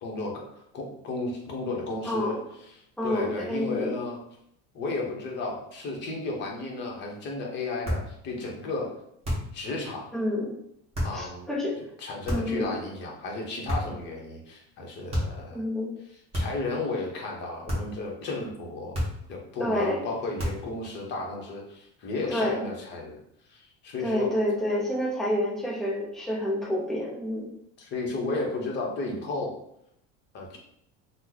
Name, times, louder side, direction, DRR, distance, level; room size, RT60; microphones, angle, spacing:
voice 1, 0.0-2.4 3.0-4.2 4.7-8.9 9.5-10.1 11.0-11.5 12.0-15.7 16.3-19.0 19.3-23.2 23.5-24.3 27.8-29.6 30.3-30.6, left 3 dB, 30° left, -1 dB, 0.7 m, -33 dB
voice 2, 2.0-2.4 3.0-4.0 10.1-10.5 11.1-11.8 12.3-12.8 15.5-16.0 19.6-20.0 22.3-22.7 24.0-27.5, left 1 dB, ahead, -4 dB, 0.4 m, -28 dB
sound 1, 7.8-8.1 9.2-9.6 10.9-11.2 12.2-12.6 13.7-14.1 15.1-15.4 16.3-16.7 17.7-18.0 18.9-19.3 20.4-20.7, equal, 20° right, 1.0 m, -30 dB
3.0 x 2.0 x 3.7 m, 0.74 s
cardioid pair, 165°, 34 cm